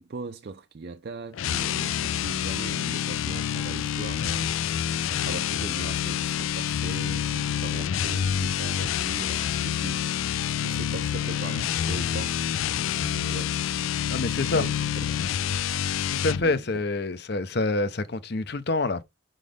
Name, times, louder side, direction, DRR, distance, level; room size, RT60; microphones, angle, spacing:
voice 1, 0.0-12.4 13.0-13.5 14.0-14.8 15.1-15.2 16.4-16.8, right 4 dB, 50° right, 0.4 m, -40 dB
sound 1, 1.3-16.5, left 9 dB, 85° left, 0.4 m, -27 dB
voice 2, 14.1-14.6 16.1-19.0, left 2 dB, 55° left, 0.7 m, -27 dB
5.1 x 3.8 x 5.0 m
head